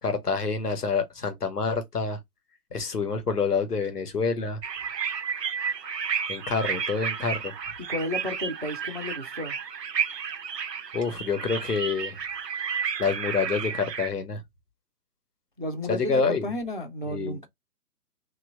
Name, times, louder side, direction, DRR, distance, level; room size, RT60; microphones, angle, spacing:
voice 1, 0.0-2.2 2.7-4.6 6.3-7.5 10.9-12.2 13.0-14.4 15.9-16.4 17.1-17.4, left 5 dB, 70° left, 1.2 m, -27 dB
sound 1, 4.6-14.1, right 7 dB, 80° right, 0.6 m, -32 dB
voice 2, 7.8-9.6 15.6-17.5, left 1 dB, 35° right, 0.4 m, -32 dB
3.2 x 2.9 x 2.5 m
figure-of-eight pair, 140°, 49 cm